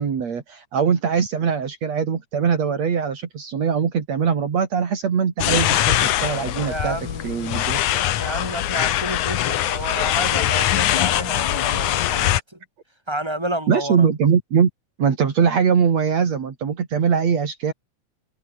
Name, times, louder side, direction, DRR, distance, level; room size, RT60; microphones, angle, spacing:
voice 1, 0.0-7.0 7.2-7.8 13.7-14.7 15.0-17.7, right 6 dB, 65° right, 3.8 m, -21 dB
sound 1, 5.4-12.4, left 13 dB, 85° left, 2.6 m, -22 dB
voice 2, 6.6-12.6 13.1-14.1, right 1 dB, 10° right, 7.9 m, -30 dB
omnidirectional pair, 3.3 m